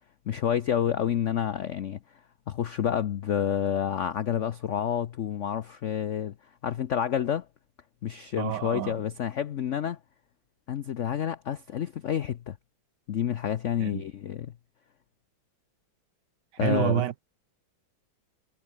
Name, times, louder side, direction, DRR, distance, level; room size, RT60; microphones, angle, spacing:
voice 1, 0.3-2.0 2.5-6.3 6.6-7.5 8.0-10.0 10.7-12.6 13.1-14.5 16.6-17.0, left 9 dB, 80° left, 0.6 m, -29 dB
voice 2, 8.4-8.9 13.8-14.0 16.6-17.2, right 11 dB, 65° right, 1.4 m, -28 dB
omnidirectional pair, 2.2 m